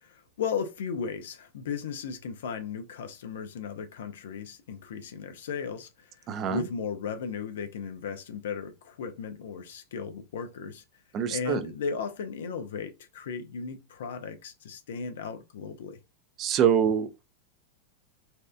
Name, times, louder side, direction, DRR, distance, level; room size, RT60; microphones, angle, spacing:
voice 1, 0.0-6.1 6.5-10.8 11.3-16.0, left 6 dB, 60° left, 0.6 m, -36 dB
voice 2, 6.3-6.6 11.1-11.6 16.4-17.2, right 8 dB, 35° right, 0.4 m, -25 dB
4.2 x 2.4 x 2.3 m
figure-of-eight pair, 90°, 0 cm